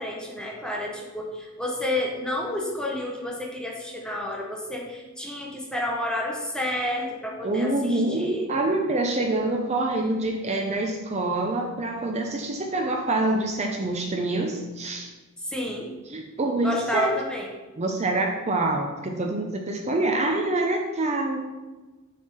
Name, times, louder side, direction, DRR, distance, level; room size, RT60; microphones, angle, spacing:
voice 1, 0.0-8.5 15.4-15.9 16.6-17.5, left 1 dB, 5° left, -1 dB, 1.0 m, -30 dB
voice 2, 7.4-15.1 16.1-17.1 17.8-21.6, right 2 dB, 30° right, 2 dB, 0.6 m, -26 dB
6.4 x 3.5 x 5.6 m, 1.2 s
head